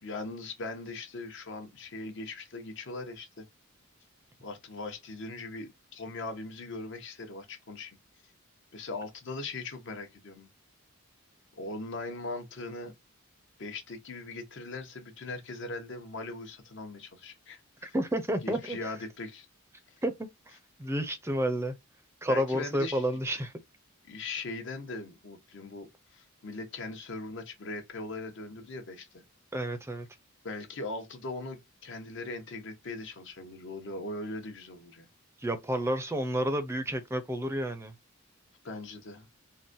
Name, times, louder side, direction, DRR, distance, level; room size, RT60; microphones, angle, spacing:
voice 1, 0.0-3.5 4.4-8.0 8.7-10.5 11.6-12.9 13.6-17.9 18.4-19.5 22.3-23.1 24.1-29.2 30.4-35.1 38.6-39.3, left 2 dB, 60° left, 0.8 m, -40 dB
voice 2, 17.9-18.9 20.0-20.3 20.8-21.7 22.2-23.5 29.5-30.1 35.4-37.9, equal, 10° right, 0.5 m, -30 dB
3.8 x 2.2 x 2.5 m
head